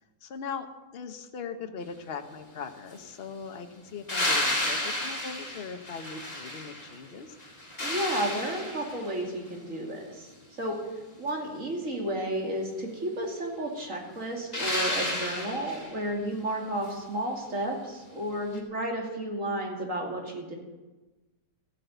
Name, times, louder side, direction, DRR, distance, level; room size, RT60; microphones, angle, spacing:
voice 1, 0.2-0.7 0.9-7.4, left 6 dB, 40° left, 7 dB, 1.2 m, -40 dB
sound 1, 4.1-7.0 7.4-9.2 14.5-16.0 18.5-18.6, left 1 dB, 25° left, 2.1 m, -31 dB
voice 2, 7.8-10.3 10.6-10.8 11.2-20.6, right 1 dB, 45° right, 0 dB, 2.9 m, -32 dB
15.0 x 9.4 x 8.0 m, 1.2 s
omnidirectional pair, 1.8 m